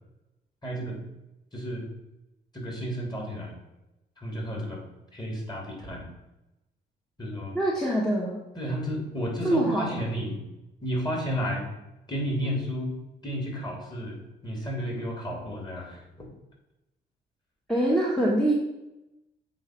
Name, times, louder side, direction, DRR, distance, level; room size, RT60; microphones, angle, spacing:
voice 1, 0.6-1.0 1.5-1.8 2.5-3.6 4.2-4.8 5.1-6.0 7.2-7.6 8.5-10.4 10.8-11.7 12.1-13.0 13.2-16.3, equal, 20° left, -1 dB, 3.1 m, -32 dB
voice 2, 7.5-8.4 9.4-10.0 17.7-18.5, right 1 dB, ahead, -3 dB, 1.4 m, -24 dB
7.7 x 4.1 x 6.0 m, 0.94 s
cardioid pair, 90°, 20 cm